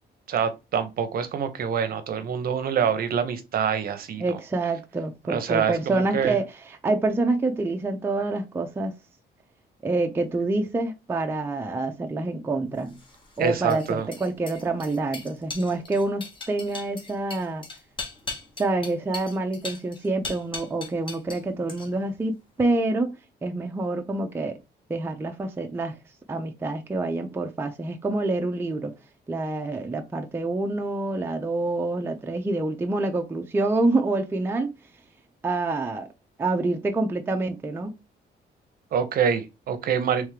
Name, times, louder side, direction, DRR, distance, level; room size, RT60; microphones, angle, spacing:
voice 1, 0.3-4.4 5.3-6.3 13.4-14.1 38.9-40.3, right 7 dB, 55° right, 0.7 m, -26 dB
voice 2, 4.2-8.9 9.8-13.0 13.4-17.7 18.6-23.2 23.4-24.6 24.9-26.0 26.3-28.9 29.3-34.7 35.4-36.1 36.4-37.9, right 2 dB, 10° right, 0.4 m, -27 dB
sound 1, 12.9-21.4 21.7-22.2, left 3 dB, 25° left, 1.0 m, -39 dB
3.4 x 3.2 x 3.2 m
cardioid pair, 160°, 19 cm